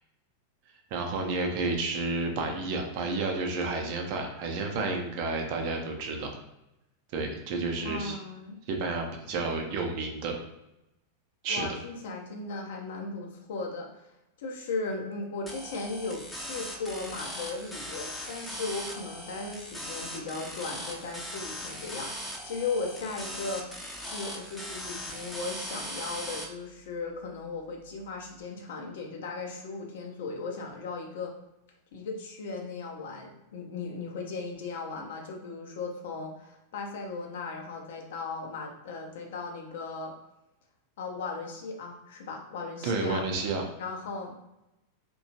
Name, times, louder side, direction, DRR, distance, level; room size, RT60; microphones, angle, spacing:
voice 1, 0.9-6.3 7.1-8.2 8.7-10.4 11.4-11.7 42.8-43.6, right 3 dB, 45° right, 2 dB, 0.5 m, -31 dB
voice 2, 7.8-8.6 11.5-14.1 14.4-23.7 24.0-31.3 31.9-40.1 41.0-43.3 43.8-44.4, left 3 dB, 55° left, 2 dB, 0.5 m, -37 dB
sound 1, 15.5-26.5, equal, 5° left, 0.5 m, -39 dB
2.8 x 2.2 x 2.7 m, 0.89 s
figure-of-eight pair, 90°, 0 cm